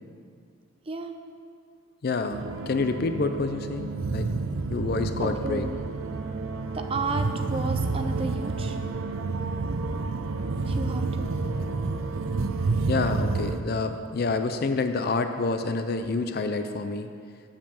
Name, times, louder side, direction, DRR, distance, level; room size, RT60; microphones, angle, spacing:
voice 1, 0.9-1.2 5.2-5.8 6.7-8.8 10.7-11.3, right 3 dB, 25° right, 6 dB, 0.5 m, -32 dB
voice 2, 2.0-4.3 4.7-5.7 12.9-17.1, left 3 dB, 45° left, 8 dB, 0.4 m, -28 dB
sound 1, 2.3-13.6, right 3 dB, 75° right, 0.6 m, -29 dB
7.6 x 7.4 x 6.9 m, 2.3 s
head